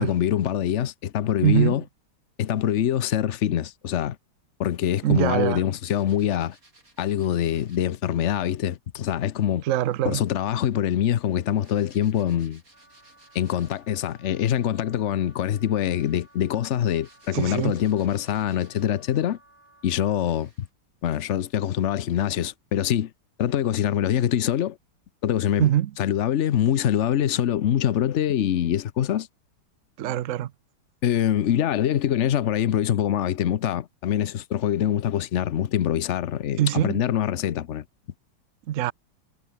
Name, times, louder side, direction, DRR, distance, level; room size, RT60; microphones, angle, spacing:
voice 1, 0.0-1.8 2.4-4.2 4.6-6.6 7.0-9.6 10.0-12.6 13.3-19.4 19.8-20.5 21.0-23.1 23.4-24.8 25.2-25.7 26.0-29.3 31.0-37.8, left 10 dB, 55° left, 0.8 m, -24 dB
voice 2, 1.4-1.8 5.0-5.6 9.6-10.2 17.3-17.8 25.6-25.9 30.0-30.5 36.6-37.0 38.7-38.9, right 12 dB, 65° right, 0.8 m, -23 dB
sound 1, 5.7-8.0 9.7-14.0 15.2-19.1 19.6-19.7 20.2-20.7, right 2 dB, 45° right, 6.9 m, -59 dB
Wind instrument woodwind instrument, 12.7-20.3, right 2 dB, 30° right, 5.3 m, -57 dB
omnidirectional pair, 2.0 m